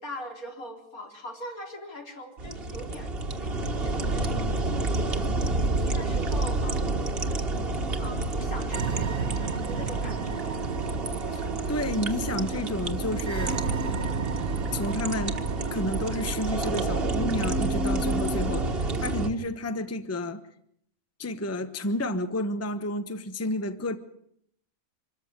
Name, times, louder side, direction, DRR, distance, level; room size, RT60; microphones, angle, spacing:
voice 1, 0.0-3.1 3.4-7.4 8.0-10.5 12.9-13.1, equal, 75° left, 2 dB, 4.2 m, -42 dB
sound 1, 2.4-19.3, right 2 dB, 40° right, 1.8 m, -29 dB
sound 2, 8.7-18.8, right 4 dB, 70° right, 1.5 m, -33 dB
voice 2, 11.3-13.6 14.7-15.4 15.7-20.4 21.2-24.0, left 1 dB, 10° left, 10 dB, 1.0 m, -31 dB
25.5 x 14.0 x 9.5 m, 0.71 s
omnidirectional pair, 1.5 m